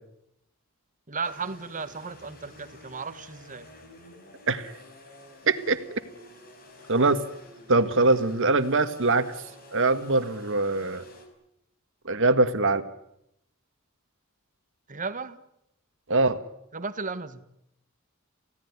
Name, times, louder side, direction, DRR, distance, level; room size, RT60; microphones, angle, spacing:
voice 1, 1.1-3.7 14.9-15.4 16.7-17.4, right 4 dB, 35° right, 12 dB, 1.6 m, -35 dB
sound 1, 1.2-11.3, left 1 dB, 45° left, 5.4 m, -50 dB
voice 2, 5.5-5.8 6.9-7.2 7.7-9.3 9.7-11.0 12.1-12.8 16.1-16.4, right 3 dB, 60° right, 10 dB, 1.8 m, -22 dB
29.0 x 17.0 x 9.8 m, 0.79 s
head